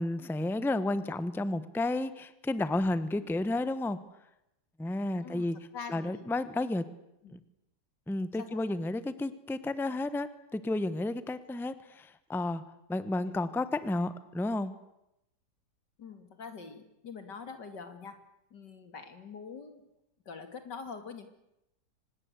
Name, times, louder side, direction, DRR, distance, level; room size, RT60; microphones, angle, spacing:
voice 1, 0.0-4.0 4.8-5.6 5.9-6.8 7.3-7.4 8.1-12.6 12.9-14.7, left 2 dB, ahead, 14 dB, 0.9 m, -32 dB
voice 2, 5.7-6.3 7.2-7.4 8.4-8.8 13.2-13.5 16.0-18.2 18.5-19.9 20.3-21.3, left 5 dB, 90° left, 8 dB, 3.1 m, -44 dB
25.0 x 20.0 x 8.3 m, 0.87 s
omnidirectional pair, 1.8 m